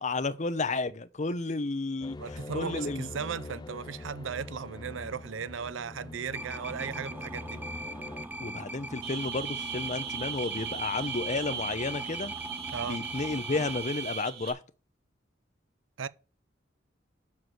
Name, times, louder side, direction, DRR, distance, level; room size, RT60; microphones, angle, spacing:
voice 1, 0.0-3.1 8.4-12.3 12.8-14.6, left 3 dB, 40° left, 0.8 m, -32 dB
sound 1, 2.0-8.3, left 2 dB, 20° left, 0.4 m, -44 dB
voice 2, 2.2-7.6 12.7-13.0 16.0-16.1, right 6 dB, 80° right, 0.6 m, -36 dB
sound 2, 6.3-14.2, right 1 dB, 10° right, 0.7 m, -40 dB
sound 3, 9.0-14.5, right 8 dB, 60° right, 2.5 m, -38 dB
7.5 x 6.3 x 7.6 m
head